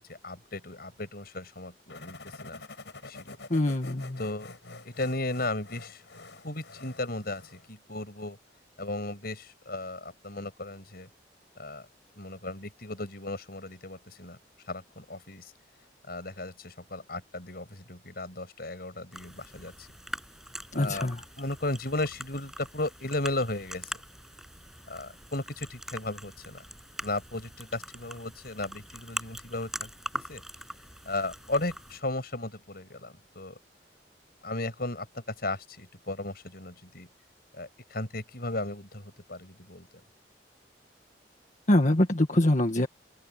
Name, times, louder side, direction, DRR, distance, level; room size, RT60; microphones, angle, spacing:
voice 1, 0.1-2.6 3.1-3.4 4.2-4.5 4.8-6.0 6.4-8.4 8.8-11.1 11.6-11.9 12.2-14.4 14.7-15.5 16.1-19.9 20.7-21.1 21.4-24.0 24.9-26.6 27.0-30.4 31.1-33.6 34.4-37.1 37.5-39.9, left 2 dB, 60° left, 7.0 m, -35 dB
sound 1, 1.9-7.7, left 3 dB, 80° left, 6.3 m, -47 dB
voice 2, 3.5-4.2 20.7-21.2 41.7-42.9, left 1 dB, 45° left, 1.7 m, -24 dB
sound 2, 19.1-32.0, equal, ahead, 7.1 m, -43 dB
open air
head